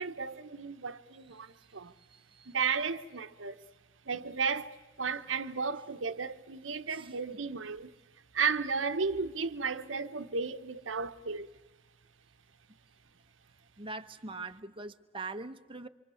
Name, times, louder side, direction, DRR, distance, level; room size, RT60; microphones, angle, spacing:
voice 1, 0.0-1.9 2.5-3.6 4.1-7.9 8.3-11.5, right 5 dB, 75° right, 1.0 m, -34 dB
voice 2, 2.1-2.5 6.9-7.0 13.8-15.9, right 3 dB, 25° right, 1.0 m, -42 dB
26.5 x 25.5 x 7.0 m
head